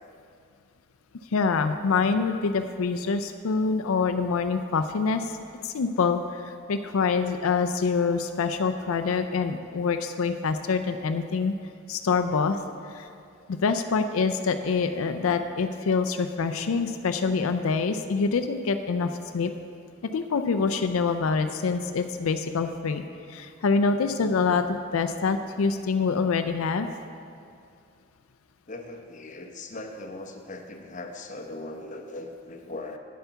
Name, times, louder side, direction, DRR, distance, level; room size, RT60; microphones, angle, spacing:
voice 1, 1.3-5.3 5.6-11.5 11.9-12.6 12.9-13.1 13.5-19.5 20.1-23.0 23.3-26.9, left 5 dB, 85° left, 8 dB, 0.4 m, -25 dB
voice 2, 28.7-33.0, left 2 dB, 35° left, 4 dB, 0.8 m, -39 dB
9.3 x 8.0 x 5.7 m, 2.4 s
head